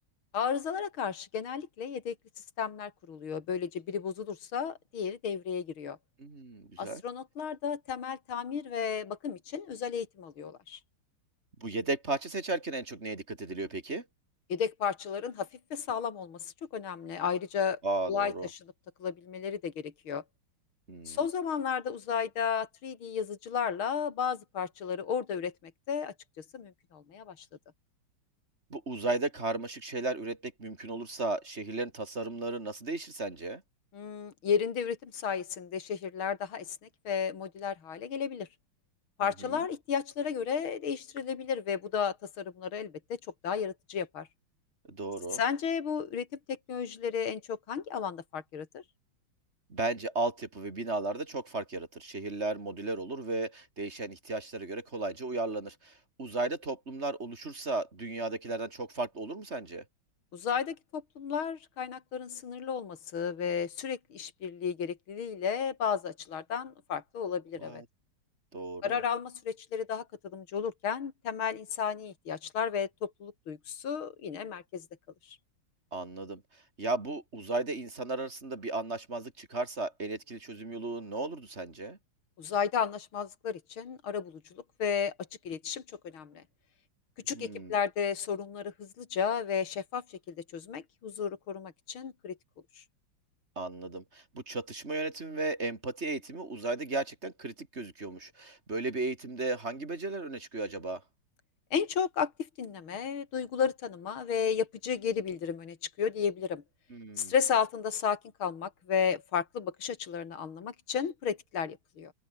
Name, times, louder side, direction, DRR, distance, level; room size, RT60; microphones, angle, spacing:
voice 1, 0.3-2.1 2.6-6.0 6.8-10.8 14.5-17.8 18.1-18.6 19.0-20.2 21.1-25.5 25.9-27.5 33.9-36.8 37.0-38.5 39.2-44.3 45.3-48.8 60.3-67.8 68.8-70.1 70.3-74.8 75.2-75.4 82.4-84.4 84.8-85.1 85.4-86.4 87.3-92.4 92.8-92.9 101.7-102.3 102.6-106.6 107.2-112.1, left 7 dB, 75° left, 3.1 m, -33 dB
voice 2, 6.2-7.0 11.6-14.0 17.8-18.5 20.9-21.2 28.7-33.6 39.2-39.6 44.9-45.4 49.7-59.8 67.6-67.8 68.5-69.0 75.9-76.4 76.8-82.0 87.3-87.8 93.6-101.0 106.9-107.3, right 2 dB, 30° right, 2.8 m, -35 dB
open air
omnidirectional pair, 2.3 m